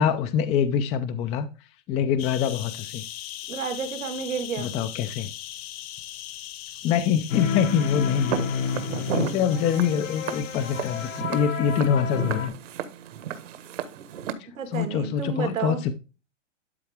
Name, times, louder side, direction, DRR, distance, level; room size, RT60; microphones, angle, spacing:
voice 1, 0.0-1.5 1.9-3.0 4.6-5.3 6.8-8.5 9.1-12.6 14.4-15.9, left 8 dB, 15° left, 0.4 m, -25 dB
sound 1, 2.2-11.2, left 13 dB, 50° left, 1.3 m, -40 dB
voice 2, 3.5-4.7 14.6-15.8, right 6 dB, 90° right, 2.2 m, -31 dB
sound 2, 7.3-12.5, left 7 dB, 80° left, 2.0 m, -31 dB
Walk footsteps, 8.3-14.3, right 9 dB, 70° right, 1.5 m, -34 dB
12.0 x 4.6 x 3.5 m
hypercardioid pair, 135°, 38 cm